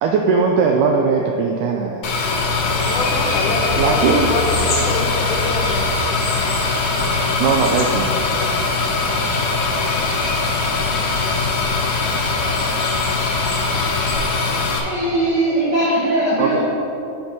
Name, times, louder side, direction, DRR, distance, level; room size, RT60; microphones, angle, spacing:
voice 1, 0.0-2.0 3.8-4.3 7.4-8.2 8.5-8.6 16.4-16.6, right 5 dB, 85° right, 1 dB, 1.8 m, -19 dB
sound 1, 2.0-14.8, left 3 dB, 70° left, 2.0 m, -21 dB
sound 2, 2.7-14.1, left 2 dB, 50° left, 1.3 m, -32 dB
voice 2, 2.8-5.9, left 3 dB, 85° left, 1 dB, 2.7 m, -25 dB
voice 3, 14.7-16.6, right 1 dB, 55° right, -9 dB, 1.1 m, -19 dB
7.2 x 5.3 x 6.1 m, 2.8 s
omnidirectional pair, 4.1 m